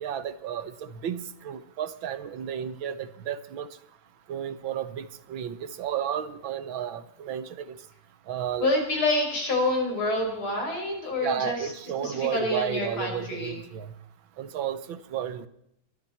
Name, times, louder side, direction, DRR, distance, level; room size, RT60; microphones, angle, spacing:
voice 1, 0.0-3.7 4.3-7.8 8.3-8.7 11.2-13.9 14.4-15.5, right 9 dB, 75° right, 14 dB, 1.7 m, -32 dB
voice 2, 8.6-11.7 12.0-13.6, left 2 dB, 85° left, 1 dB, 5.7 m, -27 dB
23.5 x 13.5 x 4.4 m, 0.74 s
omnidirectional pair, 2.2 m